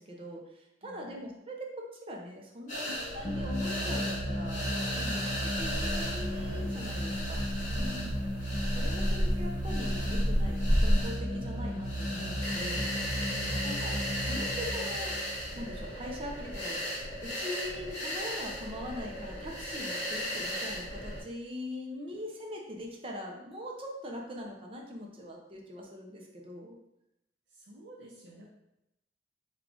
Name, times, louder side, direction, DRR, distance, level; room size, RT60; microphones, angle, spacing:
voice 1, 0.0-5.2 5.6-8.0 8.7-12.9 13.6-13.9 14.2-15.2 15.6-16.8 17.2-26.8, left 1 dB, 30° right, 0 dB, 0.6 m, -42 dB
voice 2, 0.8-1.2 2.8-3.0 4.9-5.3 7.7-8.1 9.0-9.1 13.3-13.8 21.9-22.1 27.5-28.5, equal, 80° right, -3 dB, 0.6 m, -48 dB
sound 1, 2.7-21.2, equal, 45° left, 1.1 m, -37 dB
sound 2, 3.2-16.5, equal, 20° left, 0.3 m, -35 dB
sound 3, 5.5-11.0, equal, 5° right, 1.1 m, -31 dB
3.4 x 2.4 x 3.7 m, 0.86 s
head